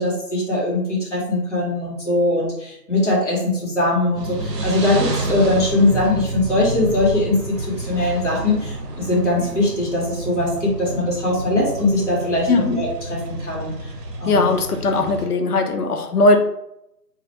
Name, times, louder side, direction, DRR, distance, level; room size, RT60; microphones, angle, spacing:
voice 1, 0.0-13.7 14.2-14.5, left 2 dB, 45° left, -5 dB, 1.0 m, -21 dB
sound 1, 4.1-15.3, right 2 dB, 80° right, 0.7 m, -29 dB
voice 2, 14.3-16.4, left 2 dB, 70° left, 5 dB, 0.5 m, -18 dB
2.3 x 2.1 x 2.7 m, 0.81 s
figure-of-eight pair, 170°, 48 cm